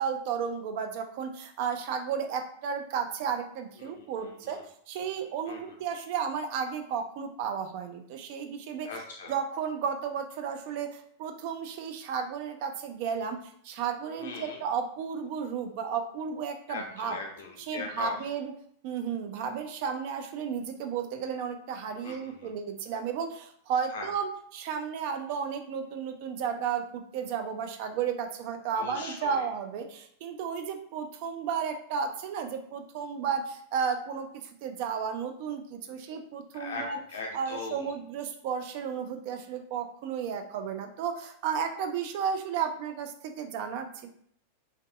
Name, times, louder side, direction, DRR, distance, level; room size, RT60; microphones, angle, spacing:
voice 1, 0.0-8.9 9.3-17.2 17.6-18.5 18.8-34.3 34.6-37.0 37.3-44.1, right 7 dB, 45° right, 6 dB, 0.3 m, -33 dB
voice 2, 3.8-4.6 5.5-5.8 8.8-9.3 14.1-14.6 16.7-18.1 22.0-22.5 23.9-24.1 28.7-29.4 36.5-37.9, left 3 dB, 60° left, 1 dB, 0.4 m, -40 dB
2.5 x 2.3 x 2.2 m, 0.63 s
figure-of-eight pair, 90°, 0 cm